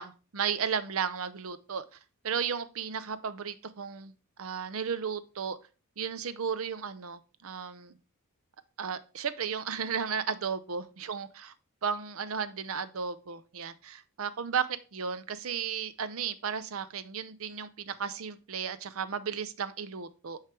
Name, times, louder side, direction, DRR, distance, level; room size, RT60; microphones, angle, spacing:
voice 1, 0.0-2.0 2.2-4.1 4.4-5.6 6.0-8.0 8.8-11.5 11.8-20.4, right 6 dB, 70° right, 14 dB, 0.6 m, -34 dB
9.1 x 3.3 x 4.4 m, 0.34 s
head